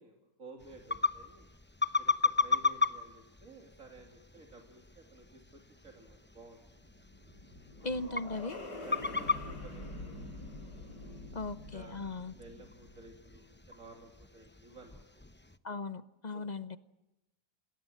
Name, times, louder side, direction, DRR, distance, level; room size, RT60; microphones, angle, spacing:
voice 1, 0.0-1.5 2.0-6.7 8.0-8.1 8.8-10.3 11.0-11.4 11.7-15.0 16.3-16.5, right 3 dB, 50° right, 2 dB, 3.1 m, -54 dB
sound 1, 0.6-15.6, left 5 dB, 15° left, 0.4 m, -37 dB
sound 2, 6.8-13.3, left 2 dB, 80° left, 4.8 m, -46 dB
voice 2, 7.8-8.6 11.3-12.4 15.6-16.8, left 3 dB, 35° left, 13 dB, 0.8 m, -38 dB
27.0 x 20.0 x 7.6 m, 0.96 s
omnidirectional pair, 1.8 m